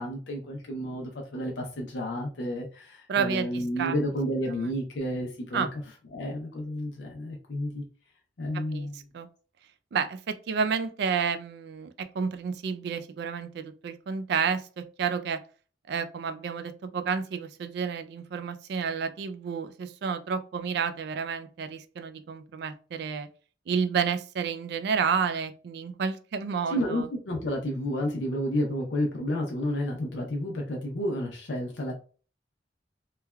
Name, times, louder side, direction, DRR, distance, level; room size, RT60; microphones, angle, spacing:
voice 1, 0.0-5.7 6.1-7.8 8.4-9.1 26.7-31.9, equal, 70° left, 0 dB, 0.6 m, -31 dB
voice 2, 3.1-3.5 3.8-3.9 5.5-5.7 8.7-8.9 9.1-9.3 9.9-15.4 15.9-23.3 23.7-27.1, right 6 dB, 60° right, 9 dB, 0.3 m, -30 dB
3.2 x 2.2 x 2.2 m, 0.38 s
head